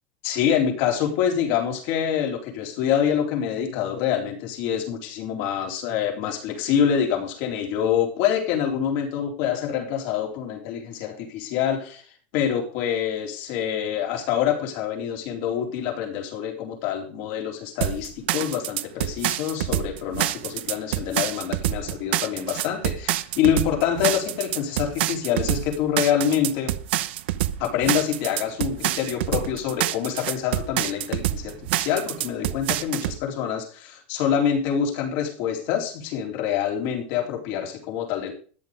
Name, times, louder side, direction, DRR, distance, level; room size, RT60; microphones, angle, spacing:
voice 1, 0.2-12.0 12.3-26.8 27.6-38.3, left 9 dB, 50° left, 2 dB, 4.0 m, -26 dB
sound 1, 17.8-33.2, right 15 dB, 70° right, 1.0 m, -27 dB
14.0 x 9.9 x 5.2 m, 0.41 s
supercardioid pair, 165°, 6 cm